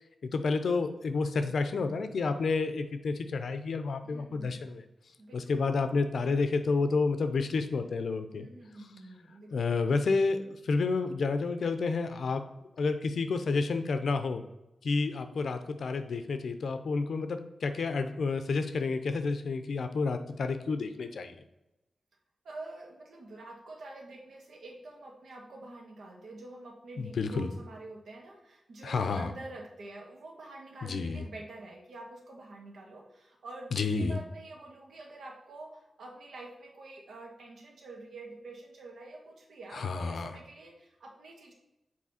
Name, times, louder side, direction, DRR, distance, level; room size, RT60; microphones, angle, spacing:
voice 1, 0.2-4.8 5.3-8.5 9.5-12.4 12.8-14.4 14.8-21.4 27.0-27.5 28.8-29.3 30.8-31.3 33.7-34.2 39.7-40.3, left 4 dB, 65° left, 9 dB, 0.6 m, -30 dB
voice 2, 4.0-4.6 5.2-5.4 8.3-9.5 22.4-41.5, right 2 dB, 80° right, 0 dB, 1.6 m, -47 dB
7.5 x 4.2 x 4.2 m, 0.93 s
wide cardioid pair, 150°, 0 cm